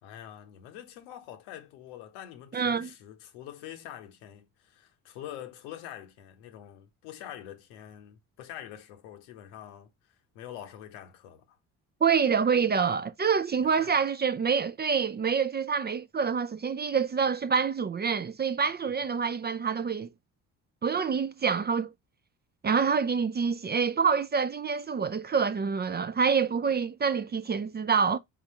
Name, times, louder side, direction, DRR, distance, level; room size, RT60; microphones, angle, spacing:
voice 1, 0.0-11.6 13.6-13.9, left 11 dB, 90° left, 0.9 m, -45 dB
voice 2, 2.5-2.9 12.0-20.1 20.8-21.9 22.6-28.2, right 6 dB, 25° right, 0.4 m, -26 dB
4.3 x 3.8 x 2.8 m
hypercardioid pair, 55°, 42 cm